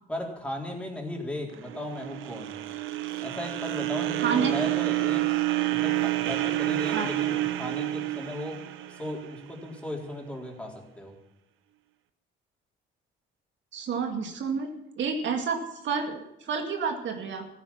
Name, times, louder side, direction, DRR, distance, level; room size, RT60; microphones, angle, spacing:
voice 1, 0.1-2.6 3.2-5.4 5.7-8.6 9.0-11.1, left 1 dB, 5° left, -1 dB, 4.1 m, -36 dB
sound 1, 1.5-9.8, right 16 dB, 85° right, 1.0 m, -29 dB
voice 2, 4.2-4.5 6.9-7.1 13.7-17.5, right 5 dB, 70° right, 4 dB, 2.2 m, -30 dB
15.0 x 10.5 x 7.3 m, 0.82 s
cardioid pair, 90°, 20 cm